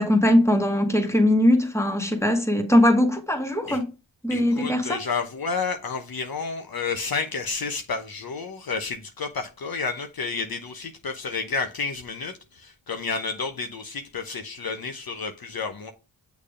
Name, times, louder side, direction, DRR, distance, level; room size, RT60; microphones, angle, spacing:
voice 1, 0.0-3.9 4.2-5.0, left 1 dB, 5° left, 1.8 m, -20 dB
voice 2, 4.3-15.9, left 4 dB, 50° left, 0.9 m, -31 dB
6.5 x 3.5 x 5.0 m
cardioid pair, 50°, 46 cm